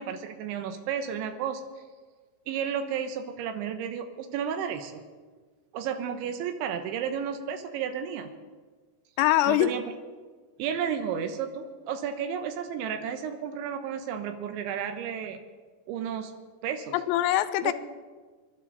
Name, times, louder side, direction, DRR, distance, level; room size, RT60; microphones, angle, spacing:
voice 1, 0.0-1.6 2.5-5.0 5.7-8.3 9.5-9.8 10.6-15.4 15.9-16.3 16.6-17.0 17.6-17.7, right 8 dB, 85° right, 6 dB, 3.4 m, -32 dB
voice 2, 9.2-9.7 16.9-17.7, left 14 dB, 85° left, 12 dB, 2.7 m, -23 dB
27.0 x 12.0 x 4.0 m, 1.4 s
omnidirectional pair, 5.2 m